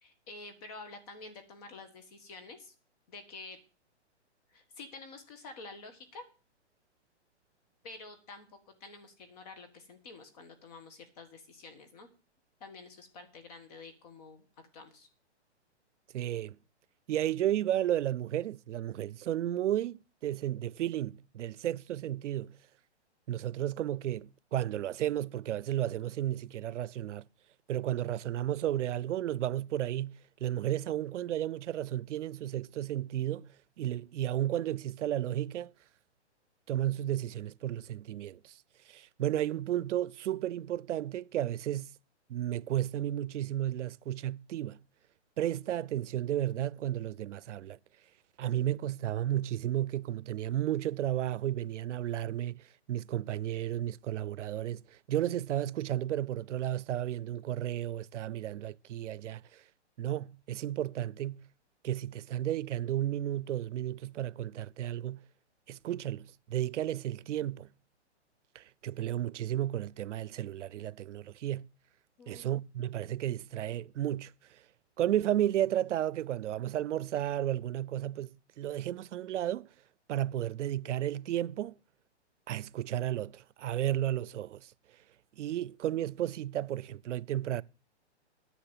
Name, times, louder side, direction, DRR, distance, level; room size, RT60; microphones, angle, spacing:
voice 1, 0.0-2.7 3.1-3.6 4.5-6.2 7.8-12.1 12.6-14.4 14.7-15.1 72.2-72.5, left 3 dB, 35° left, 1.6 m, -49 dB
voice 2, 16.1-16.6 17.1-22.6 23.3-27.3 27.7-35.7 36.7-38.6 38.9-41.9 42.3-44.8 45.4-47.8 48.4-59.6 60.0-61.5 61.8-65.3 65.7-67.7 68.5-71.7 72.3-74.6 75.0-79.7 80.1-81.8 82.5-84.7 85.4-87.6, right 12 dB, 90° right, 0.5 m, -33 dB
10.0 x 6.3 x 8.1 m
hypercardioid pair, 165°, 35 cm